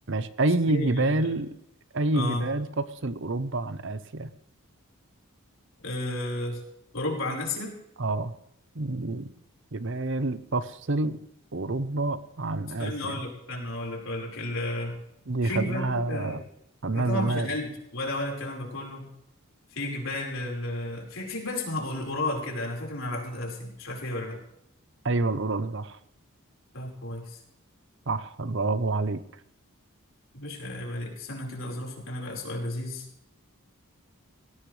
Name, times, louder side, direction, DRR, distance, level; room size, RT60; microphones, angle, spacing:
voice 1, 0.1-1.5 1.9-4.3 8.0-8.3 8.7-9.3 9.7-11.2 11.5-13.2 15.3-16.4 16.8-17.5 25.0-26.0 28.1-29.2, right 2 dB, 55° right, 13 dB, 0.8 m, -28 dB
voice 2, 0.7-1.3 2.1-2.4 5.8-6.6 6.9-7.8 12.8-15.0 15.4-16.3 16.9-19.1 19.7-24.4 26.7-27.4 30.3-33.1, left 1 dB, 65° left, -1 dB, 4.8 m, -33 dB
19.5 x 17.0 x 3.3 m, 0.76 s
head